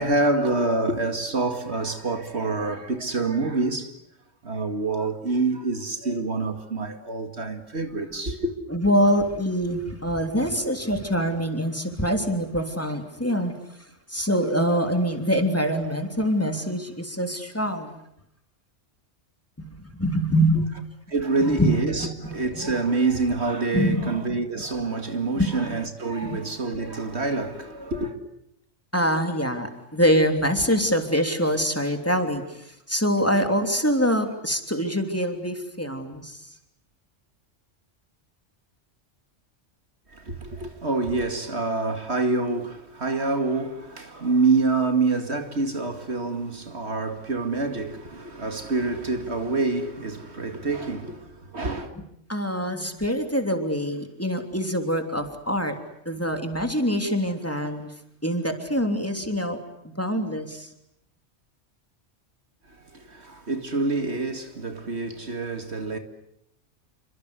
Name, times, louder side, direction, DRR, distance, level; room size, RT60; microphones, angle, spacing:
voice 1, 0.0-3.9 4.4-8.5 21.1-28.2 40.1-51.9 62.7-66.0, right 3 dB, 60° right, 2.5 m, -26 dB
voice 2, 8.7-13.5 14.1-18.0 19.6-20.7 21.4-21.7 22.0-22.7 23.7-24.2 25.4-25.5 26.2-26.4 28.9-36.4 52.3-55.7 56.0-57.9 58.2-59.6 59.8-60.7, equal, 10° left, 3.2 m, -25 dB
28.5 x 25.5 x 8.2 m
omnidirectional pair, 1.3 m